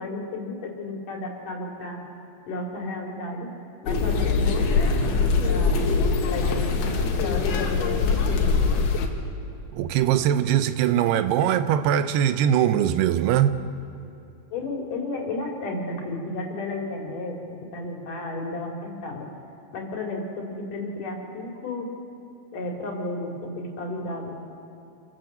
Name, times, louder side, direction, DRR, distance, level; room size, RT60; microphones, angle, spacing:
voice 1, 0.0-2.0 2.5-3.5 3.8-5.8 6.3-6.9 7.2-8.9 14.5-19.3 19.7-21.9 22.5-24.4, left 2 dB, 55° left, 4.2 m, -33 dB
sound 1, 3.9-9.1, left 4 dB, 75° left, 3.6 m, -22 dB
voice 2, 9.7-13.6, right 10 dB, 80° right, 2.8 m, -21 dB
29.0 x 14.0 x 7.9 m
omnidirectional pair, 4.7 m